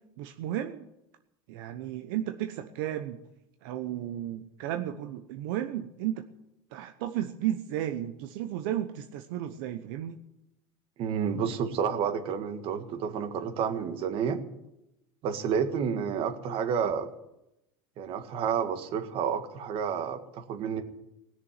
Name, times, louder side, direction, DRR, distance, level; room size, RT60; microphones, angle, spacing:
voice 1, 0.2-0.9 1.5-3.2 3.6-6.2 6.7-10.2, right 12 dB, 80° right, 7 dB, 1.0 m, -33 dB
voice 2, 11.0-14.4 15.2-17.1 18.0-20.8, right 7 dB, 55° right, 8 dB, 1.8 m, -30 dB
19.5 x 6.9 x 9.7 m, 0.88 s
supercardioid pair, 115°, 11 cm